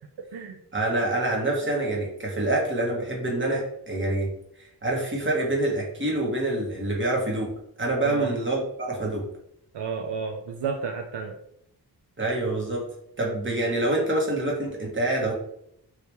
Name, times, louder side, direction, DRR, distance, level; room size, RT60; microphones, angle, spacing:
voice 1, 0.7-4.3 4.8-7.5 7.8-9.3 12.2-12.8 13.2-15.3, right 2 dB, 30° right, -2 dB, 1.3 m, -26 dB
voice 2, 9.7-11.3, right 5 dB, 75° right, 3 dB, 0.5 m, -31 dB
3.1 x 2.8 x 3.4 m, 0.73 s
cardioid pair, 70°, 41 cm